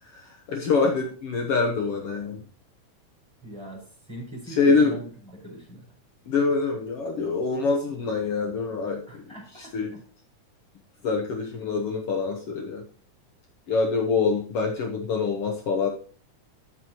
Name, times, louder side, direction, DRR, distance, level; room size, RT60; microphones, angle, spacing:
voice 1, 0.1-2.4 4.5-4.9 6.3-9.2 9.7-9.9 11.0-12.8 13.7-15.9, left 4 dB, 60° left, 1 dB, 1.6 m, -25 dB
voice 2, 3.4-5.8 9.1-10.0, right 1 dB, 5° right, -2 dB, 4.5 m, -41 dB
13.0 x 6.1 x 3.0 m, 0.43 s
omnidirectional pair, 3.8 m